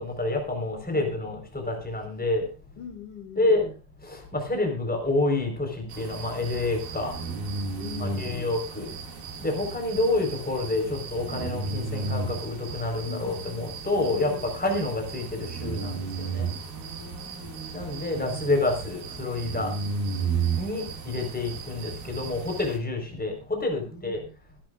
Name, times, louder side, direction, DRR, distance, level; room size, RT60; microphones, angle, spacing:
voice 1, 0.0-2.5 3.4-3.7 4.0-7.1 8.0-8.9 9.4-16.5 17.7-19.7 20.5-24.2, left 2 dB, ahead, 3 dB, 3.9 m, -28 dB
voice 2, 0.9-1.3 2.8-3.6 7.7-8.5 13.0-13.5 14.0-14.4 16.5-18.5 21.5-21.6 23.9-24.3, left 4 dB, 55° left, 4 dB, 3.7 m, -42 dB
sound 1, 5.9-22.8, right 4 dB, 70° right, 4.0 m, -34 dB
25.5 x 10.5 x 2.5 m, 0.31 s
omnidirectional pair, 4.3 m